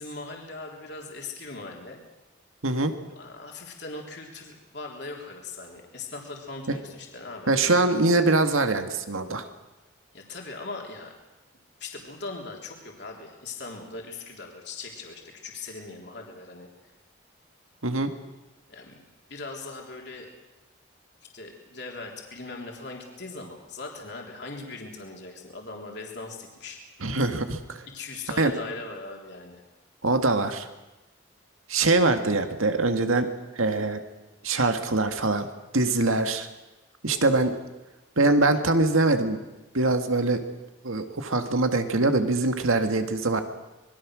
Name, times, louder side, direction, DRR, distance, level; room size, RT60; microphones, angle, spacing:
voice 1, 0.0-2.0 3.1-7.6 8.1-8.2 10.1-11.2 11.8-16.7 18.7-19.0 19.3-20.3 21.3-26.8 27.9-29.6 37.1-37.3, left 3 dB, 55° left, 0 dB, 3.4 m, -40 dB
voice 2, 7.5-9.5 17.8-18.1 27.0-27.8 28.4-28.5 30.0-30.7 31.7-33.3 33.6-34.0 34.4-35.5 35.7-36.5 37.0-37.6 38.2-39.4 39.7-40.4 40.8-43.4, right 2 dB, 90° right, 7 dB, 2.0 m, -23 dB
26.0 x 21.5 x 6.4 m, 1.1 s
head